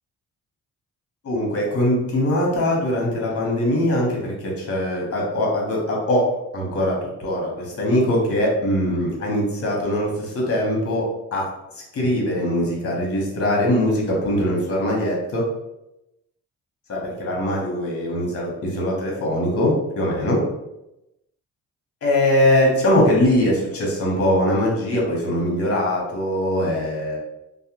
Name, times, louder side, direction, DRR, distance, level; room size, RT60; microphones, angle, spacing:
voice 1, 1.2-6.3 6.5-11.5 11.9-15.5 16.9-20.4 22.0-27.2, left 1 dB, 50° left, -2 dB, 1.0 m, -22 dB
2.4 x 2.1 x 2.9 m, 0.90 s
cardioid pair, 90°, 30 cm